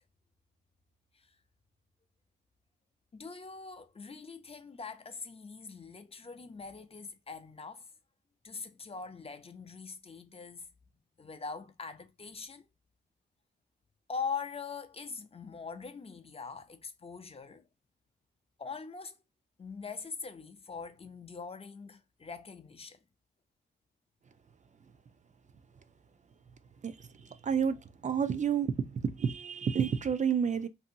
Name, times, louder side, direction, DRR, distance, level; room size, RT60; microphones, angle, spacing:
voice 1, 3.1-7.9 8.4-10.7 11.2-12.7 14.1-17.7 18.6-19.2 19.6-23.0, left 5 dB, 30° left, 0.6 m, -42 dB
voice 2, 26.8-30.7, right 7 dB, 40° right, 0.5 m, -30 dB
2.7 x 2.7 x 2.7 m
cardioid pair, 65°, 19 cm